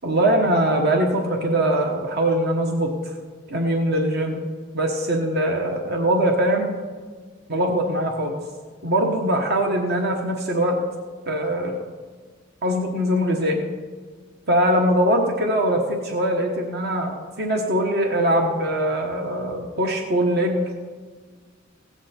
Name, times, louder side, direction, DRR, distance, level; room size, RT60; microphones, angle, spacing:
voice 1, 0.0-3.1 3.5-4.4 4.7-6.7 7.5-8.3 8.8-10.8 11.3-11.7 12.6-13.6 14.5-20.7, right 1 dB, 55° right, 2 dB, 1.2 m, -22 dB
16.5 x 8.7 x 4.4 m, 1.5 s
head